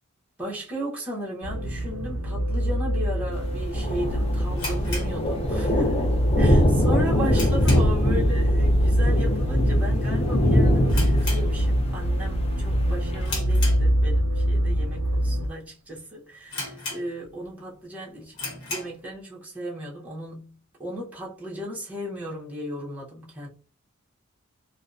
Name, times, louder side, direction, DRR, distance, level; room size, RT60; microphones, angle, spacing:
voice 1, 0.4-18.4 18.7-23.5, right 1 dB, 5° right, 0.7 m, -35 dB
sound 1, 1.4-15.5, equal, 60° right, 0.4 m, -25 dB
Thunder, 3.3-13.3, left 1 dB, 25° left, 0.4 m, -24 dB
sound 2, 4.5-5.9 6.2-6.3 6.8-8.1 8.4-8.7 9.0-9.1 9.8-10.1 10.3-10.4 10.8-12.0 12.4-12.7 13.2-14.3 14.9-15.0 15.6-15.7 15.9-16.0 16.5-17.5 17.8-17.9 18.3-19.0, left 3 dB, 60° left, 1.1 m, -35 dB
2.5 x 2.1 x 2.4 m
head